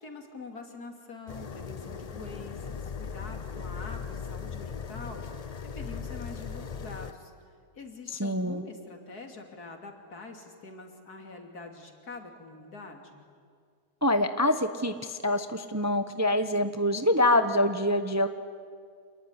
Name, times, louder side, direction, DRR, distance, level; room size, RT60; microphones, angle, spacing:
voice 1, 0.0-5.2 5.6-7.3 7.7-13.3, left 3 dB, 75° left, 4 dB, 3.3 m, -45 dB
sound 1, 1.3-7.1, left 6 dB, 45° left, 0.5 m, -38 dB
voice 2, 8.2-8.6 14.0-18.3, left 1 dB, 15° right, 9 dB, 0.8 m, -25 dB
27.0 x 20.5 x 9.8 m, 2.1 s
omnidirectional pair, 1.7 m